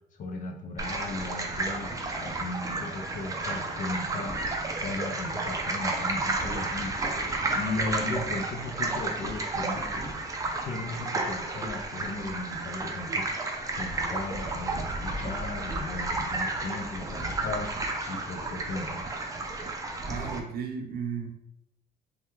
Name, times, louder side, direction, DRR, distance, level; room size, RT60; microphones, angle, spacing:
voice 1, 0.2-1.9 2.2-4.4 4.8-9.9 10.6-13.3 13.8-17.7 18.1-19.1, left 3 dB, 50° left, 4 dB, 0.5 m, -36 dB
sound 1, 0.8-20.4, right 2 dB, 20° right, 0.5 m, -32 dB
voice 2, 20.1-21.3, right 6 dB, 65° right, 4 dB, 0.7 m, -34 dB
3.3 x 2.2 x 3.0 m, 0.79 s
cardioid pair, 110°, 17 cm